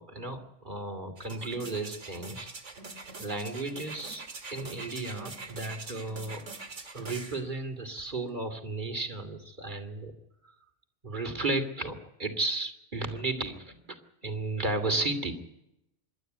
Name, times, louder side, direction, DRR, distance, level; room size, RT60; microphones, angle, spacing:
voice 1, 0.0-2.5 3.2-4.2 4.5-6.4 6.9-10.1 10.4-10.5 11.0-15.3, right 2 dB, 40° right, 5 dB, 3.0 m, -34 dB
sound 1, 1.2-7.4 8.0-8.1, right 3 dB, 85° right, 2.6 m, -44 dB
25.5 x 12.5 x 9.5 m, 0.84 s
omnidirectional pair, 1.2 m